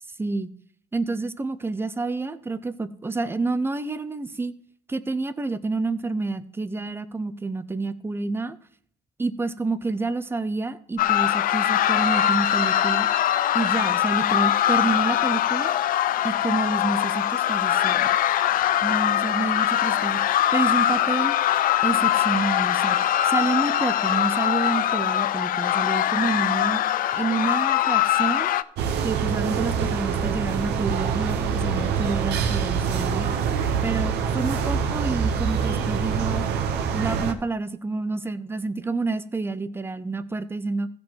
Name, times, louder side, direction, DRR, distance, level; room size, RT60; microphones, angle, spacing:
voice 1, 0.2-0.5 0.9-4.5 4.9-8.6 9.2-13.1 13.5-15.7 16.2-18.1 18.8-21.3 21.8-26.8 27.1-28.5 29.0-33.3 33.8-36.5 36.9-40.9, right 3 dB, 15° right, 14 dB, 0.6 m, -28 dB
sound 1, 11.0-28.6, left 11 dB, 55° left, 0.4 m, -22 dB
sound 2, 28.8-37.3, right 6 dB, 80° right, 1.0 m, -25 dB
15.5 x 5.2 x 4.6 m, 0.63 s
cardioid pair, 110°, 17 cm